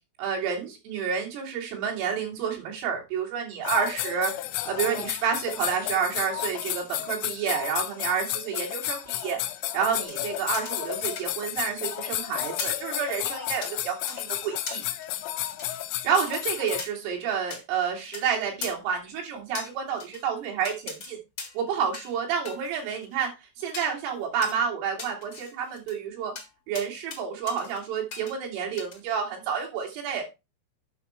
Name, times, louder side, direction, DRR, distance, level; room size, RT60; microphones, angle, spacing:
voice 1, 0.2-4.3 4.7-9.4 9.7-14.8 16.1-21.2 21.6-23.3 23.6-26.3 26.7-30.2, right 7 dB, 80° right, -1 dB, 5.3 m, -29 dB
sound 1, 3.6-16.8, left 14 dB, 85° left, 3.2 m, -32 dB
sound 2, 10.0-11.8 12.1-12.2 12.6-12.9 13.6-13.8 14.1-14.3 14.7-15.8 16.3-16.4 16.8-16.9 17.5-17.6 18.1-18.2 18.6-18.7 19.5-20.2 20.6-21.1 21.4-21.6 21.9-22.2 22.5-23.3 23.7-23.9 24.4-24.6 25.0-26.0 26.4-26.5 26.7-27.2 27.5-27.8 28.1-28.3 28.8-29.0, left 5 dB, 55° left, 1.4 m, -39 dB
9.2 x 6.4 x 4.3 m, 0.26 s
omnidirectional pair, 5.8 m